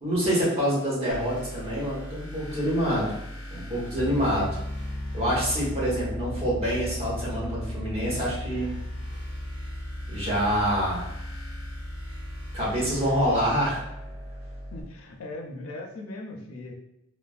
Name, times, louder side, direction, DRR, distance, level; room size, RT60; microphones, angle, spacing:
voice 1, 0.0-3.1 3.5-4.6 5.1-8.8 10.1-11.0 12.5-13.8, equal, 30° right, -6 dB, 1.0 m, -26 dB
sound 1, 1.1-14.8, equal, 70° right, 0.8 m, -40 dB
Piano, 3.9-13.5, left 1 dB, ahead, 1.2 m, -36 dB
voice 2, 14.7-16.7, left 2 dB, 70° left, 2 dB, 0.4 m, -39 dB
3.2 x 2.1 x 2.3 m, 0.84 s
head